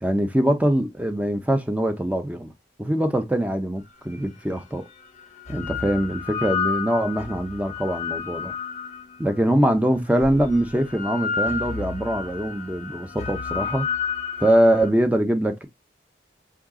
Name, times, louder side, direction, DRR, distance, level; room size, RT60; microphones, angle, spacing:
voice 1, 0.0-2.5 2.8-4.8 5.5-8.5 9.2-13.9 14.4-15.7, right 1 dB, 10° right, 0.5 m, -23 dB
sound 1, 4.1-4.2 5.2-9.5 10.2-14.9, left 6 dB, 40° left, 0.6 m, -31 dB
4.7 x 2.3 x 3.6 m
head